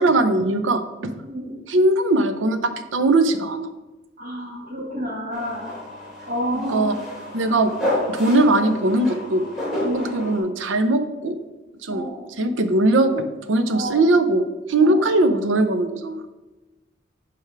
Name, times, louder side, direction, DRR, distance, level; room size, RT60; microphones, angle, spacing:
voice 1, 0.0-1.1 1.7-3.7 6.7-6.9 7.3-7.7 8.1-9.5 9.9-11.4 11.8-12.1 12.4-16.2, right 2 dB, 90° right, 9 dB, 0.6 m, -20 dB
voice 2, 1.2-1.6 4.2-5.7 6.3-7.0 7.5-7.6 9.8-10.3 11.9-12.2 13.6-14.0 14.8-15.0, equal, 45° right, -4 dB, 1.5 m, -30 dB
sound 1, 5.3-10.4, left 1 dB, ahead, 2.0 m, -30 dB
6.5 x 3.5 x 5.7 m, 1.1 s
head